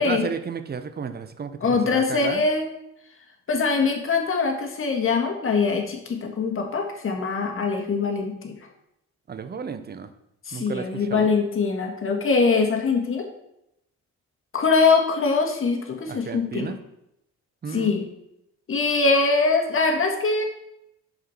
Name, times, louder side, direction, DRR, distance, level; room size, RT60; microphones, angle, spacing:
voice 1, 0.0-2.4 9.3-10.1 10.5-11.3 16.1-16.8 17.6-18.0, right 5 dB, 35° right, 10 dB, 0.8 m, -32 dB
voice 2, 1.6-2.7 3.5-8.5 10.4-13.2 14.5-16.7 17.7-18.0 18.7-20.4, left 4 dB, 45° left, 2 dB, 1.7 m, -23 dB
6.0 x 5.0 x 6.1 m, 0.83 s
cardioid pair, 90°, 30 cm